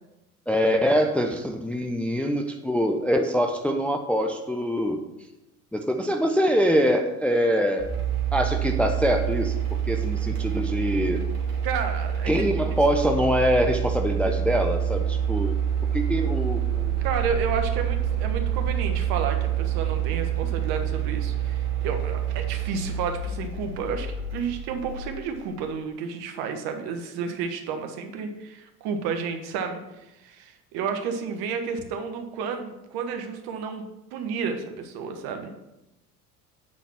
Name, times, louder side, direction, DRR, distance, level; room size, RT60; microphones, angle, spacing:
voice 1, 0.5-5.0 5.7-7.9 8.3-9.5 9.9-11.2 12.3-15.5 15.9-16.9, equal, 5° left, 4 dB, 0.5 m, -24 dB
sound 1, 7.8-25.6, right 9 dB, 90° right, 2.0 m, -27 dB
voice 2, 11.6-12.4 17.0-29.8 30.2-33.8 34.1-35.5, right 6 dB, 55° right, 5 dB, 1.4 m, -31 dB
9.0 x 4.1 x 5.8 m, 0.95 s
hypercardioid pair, 80°, 44 cm